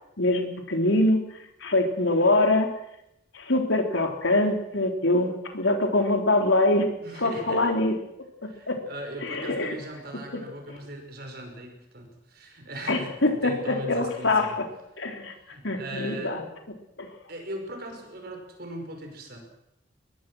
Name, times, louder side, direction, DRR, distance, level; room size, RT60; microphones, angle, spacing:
voice 1, 0.2-1.2 1.6-2.7 3.3-6.9 7.2-7.9 8.7-8.8 9.2-9.7 12.9-13.5 13.9-14.5 15.0-15.3 15.6-16.4 17.0-17.1, left 2 dB, 70° left, 3 dB, 3.5 m, -23 dB
voice 2, 7.0-7.6 8.4-13.1 13.4-14.6 15.3-16.4 17.3-19.4, right 1 dB, 50° right, 3 dB, 5.5 m, -39 dB
23.0 x 20.5 x 6.3 m, 0.86 s
head